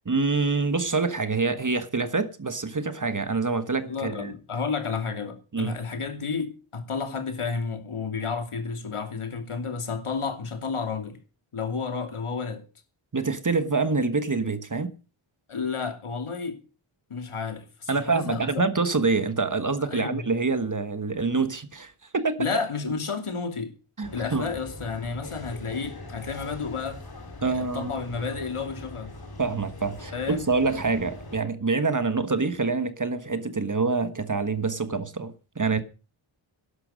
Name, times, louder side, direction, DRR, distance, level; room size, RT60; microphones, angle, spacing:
voice 1, 0.0-4.3 5.5-5.7 13.1-14.9 17.9-22.5 24.0-24.5 27.4-28.0 29.4-35.8, right 4 dB, 35° right, 1.4 m, -26 dB
voice 2, 3.8-11.2 11.5-12.6 15.5-16.6 17.1-18.6 19.9-20.2 22.4-23.7 24.1-27.0 27.4-29.1 30.1-30.4, left 5 dB, 80° left, 2.8 m, -31 dB
sound 1, 24.0-31.4, left 2 dB, 45° left, 3.0 m, -41 dB
11.5 x 11.5 x 6.5 m
wide cardioid pair, 85°, 50 cm